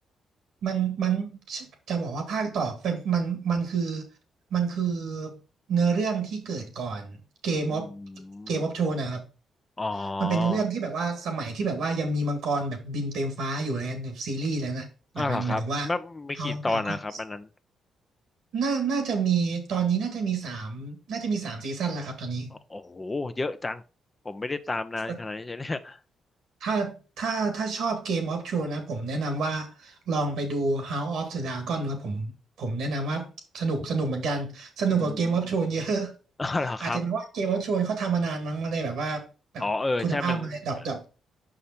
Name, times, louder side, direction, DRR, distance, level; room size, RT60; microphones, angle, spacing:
voice 1, 0.6-4.0 4.5-5.4 5.7-7.2 7.4-7.9 8.5-9.2 10.2-14.9 15.1-15.9 16.4-17.0 18.5-22.5 25.1-25.2 26.6-33.3 33.5-36.1 36.8-39.3 39.5-39.7 40.0-41.0, right 4 dB, 75° right, 2.0 m, -28 dB
voice 2, 7.7-8.6 9.8-10.6 15.2-17.5 22.5-23.8 24.2-26.0 35.0-35.3 36.4-37.0 39.6-40.5, left 2 dB, 30° left, 0.8 m, -31 dB
5.7 x 5.0 x 4.4 m
supercardioid pair, 60°, 0 cm